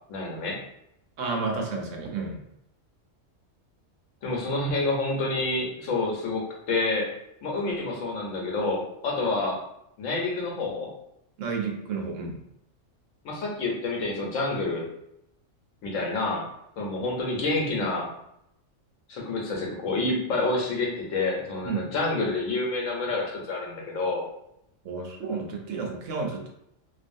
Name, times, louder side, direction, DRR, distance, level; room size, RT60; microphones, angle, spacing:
voice 1, 0.1-0.6 4.2-7.1 7.4-9.6 10.0-10.9 13.2-14.9 15.8-16.5 16.8-18.1 19.1-24.2, left 2 dB, 90° left, -2 dB, 1.1 m, -28 dB
voice 2, 1.2-2.4 11.4-12.4 21.6-21.8 24.8-26.5, right 4 dB, 80° right, 1 dB, 1.0 m, -31 dB
2.6 x 2.3 x 2.5 m, 0.79 s
omnidirectional pair, 1.3 m